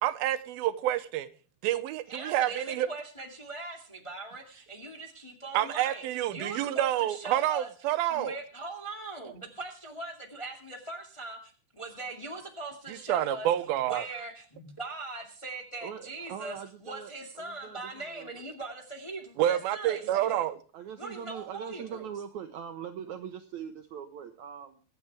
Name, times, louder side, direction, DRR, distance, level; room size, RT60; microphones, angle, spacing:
voice 1, 0.0-1.3 1.6-2.9 5.5-8.4 12.9-14.1 19.4-20.6, right 12 dB, 90° right, 2.6 m, -28 dB
voice 2, 2.1-7.7 8.1-13.5 13.8-16.6 16.8-20.5 21.0-22.1, right 2 dB, 15° left, 1.3 m, -41 dB
voice 3, 15.8-18.4 20.7-24.8, right 8 dB, 75° right, 1.8 m, -42 dB
24.0 x 8.6 x 3.4 m
omnidirectional pair, 4.2 m